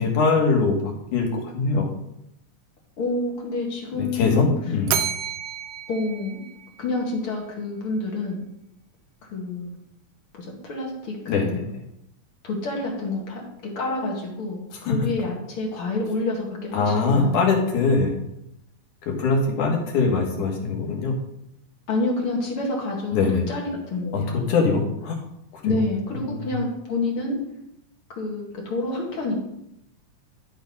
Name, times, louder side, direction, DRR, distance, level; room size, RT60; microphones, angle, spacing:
voice 1, 0.0-1.9 3.9-4.9 11.3-11.6 14.7-15.1 16.7-18.1 19.0-21.1 23.1-23.4 24.1-25.2 25.5-25.8 26.1-26.5, left 4 dB, 75° left, 0 dB, 3.1 m, -22 dB
voice 2, 3.0-4.5 5.9-6.4 6.8-8.4 9.3-9.7 10.3-11.7 12.4-13.4 13.8-14.6 14.9-17.4 21.9-24.4 25.6-27.4 28.1-29.3, left 2 dB, 45° left, -1 dB, 2.5 m, -28 dB
Bell, 4.9-7.2, right 9 dB, 85° right, 2.1 m, -30 dB
12.0 x 4.4 x 5.4 m, 0.81 s
omnidirectional pair, 3.6 m